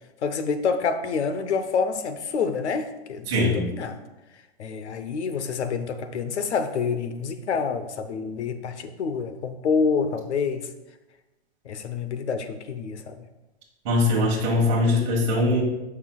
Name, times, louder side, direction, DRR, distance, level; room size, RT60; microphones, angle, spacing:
voice 1, 0.2-4.0 4.6-10.7 11.7-13.2, left 5 dB, 85° left, 1.0 m, -27 dB
voice 2, 3.3-3.6 13.9-15.6, left 2 dB, 25° right, 1.9 m, -21 dB
13.5 x 6.3 x 2.4 m
hypercardioid pair, 180°, 33 cm